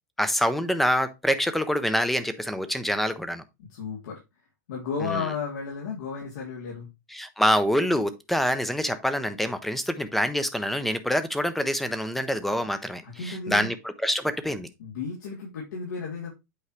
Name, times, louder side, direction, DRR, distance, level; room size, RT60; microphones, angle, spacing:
voice 1, 0.2-3.4 5.0-5.2 7.1-13.8 14.0-14.7, equal, ahead, 0.5 m, -26 dB
voice 2, 3.7-4.2 4.7-6.9 13.0-13.7 14.8-16.3, left 5 dB, 80° left, 2.9 m, -33 dB
8.2 x 4.7 x 3.1 m
supercardioid pair, 170°, 10 cm